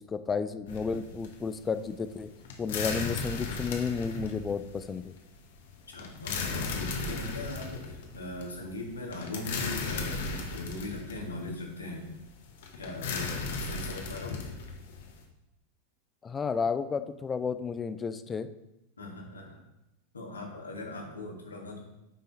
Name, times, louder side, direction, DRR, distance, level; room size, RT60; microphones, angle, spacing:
voice 1, 0.0-2.3 2.6-5.1 16.2-18.5, left 5 dB, 20° left, 12 dB, 0.4 m, -32 dB
sound 1, 0.7-15.2, left 4 dB, 55° left, 1.2 m, -36 dB
voice 2, 5.9-12.1 12.8-14.5 19.0-19.6 20.1-21.8, left 1 dB, 75° left, 0 dB, 1.8 m, -40 dB
8.7 x 5.6 x 4.0 m, 0.90 s
figure-of-eight pair, 90°, 0 cm